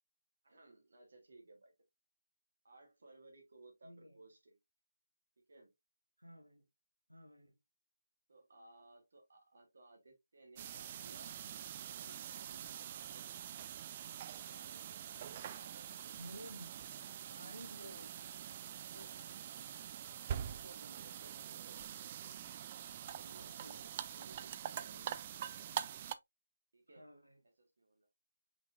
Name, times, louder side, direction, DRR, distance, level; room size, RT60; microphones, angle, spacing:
voice 1, 0.4-1.7 2.6-4.6 5.5-5.7 8.3-13.4 14.1-16.2 20.2-22.0 23.0-25.3 26.7-27.1 27.6-28.1, right 2 dB, 50° right, 1.3 m, -61 dB
voice 2, 3.8-4.2 6.2-6.6 7.1-7.6 16.1-16.8 17.3-18.6 18.9-19.3 23.4-24.0 26.9-27.4, equal, 85° right, 1.6 m, -54 dB
sound 1, 10.6-26.1, right 10 dB, 25° right, 0.3 m, -45 dB
5.8 x 3.7 x 2.4 m
figure-of-eight pair, 150°, 0 cm